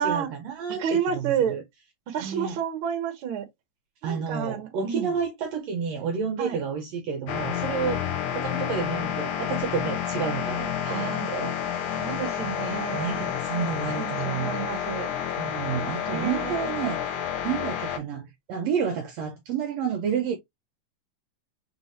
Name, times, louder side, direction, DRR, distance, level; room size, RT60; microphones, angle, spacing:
voice 1, 0.0-1.6 2.2-2.6 4.0-12.0 12.9-14.8 15.4-18.2 18.5-20.4, right 6 dB, 70° right, 1.8 m, -30 dB
voice 2, 0.7-1.6 2.1-3.5 4.0-5.1 6.4-6.6 10.8-11.3 12.0-13.2 13.9-15.1 16.1-16.6, right 8 dB, 55° right, 1.6 m, -30 dB
sound 1, 7.3-18.0, left 9 dB, 90° left, 2.3 m, -30 dB
5.7 x 2.6 x 3.1 m
omnidirectional pair, 3.4 m